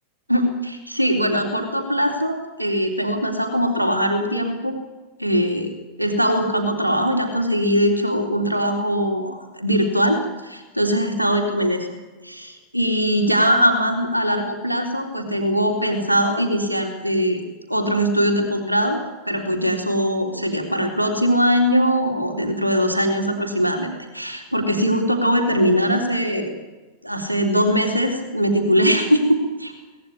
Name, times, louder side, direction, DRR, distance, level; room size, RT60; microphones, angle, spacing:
voice 1, 0.3-4.8 5.2-5.7 6.0-11.9 12.2-17.4 17.7-26.5 27.0-29.7, equal, 85° right, 3 dB, 3.7 m, -21 dB
24.5 x 19.0 x 9.6 m, 1.2 s
figure-of-eight pair, 90°, 0 cm